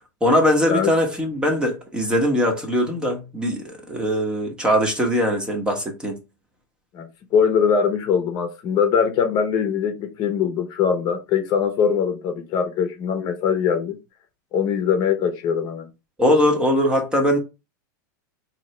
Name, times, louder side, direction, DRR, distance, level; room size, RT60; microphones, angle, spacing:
voice 1, 0.2-6.2 16.2-17.4, equal, 10° right, 0.9 m, -21 dB
voice 2, 6.9-14.0 14.5-15.9, left 7 dB, 35° left, 0.9 m, -22 dB
4.0 x 2.9 x 3.2 m
supercardioid pair, 135°, 11 cm